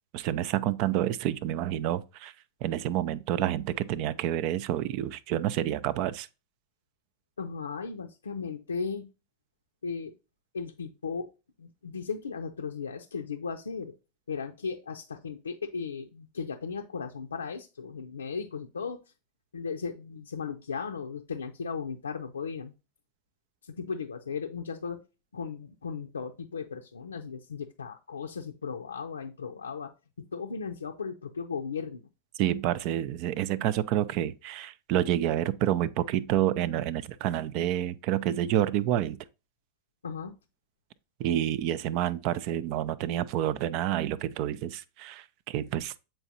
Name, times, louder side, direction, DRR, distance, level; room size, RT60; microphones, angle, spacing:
voice 1, 0.1-2.3 2.6-6.3 32.4-39.2 41.2-46.0, right 12 dB, 45° right, 0.4 m, -28 dB
voice 2, 7.4-9.1 9.8-10.1 10.5-11.3 11.6-13.9 14.3-19.0 19.5-22.7 23.6-25.0 25.3-29.9 30.2-32.1 40.0-40.4, left 5 dB, 75° left, 0.5 m, -36 dB
7.8 x 4.4 x 2.7 m
figure-of-eight pair, 90°, 0 cm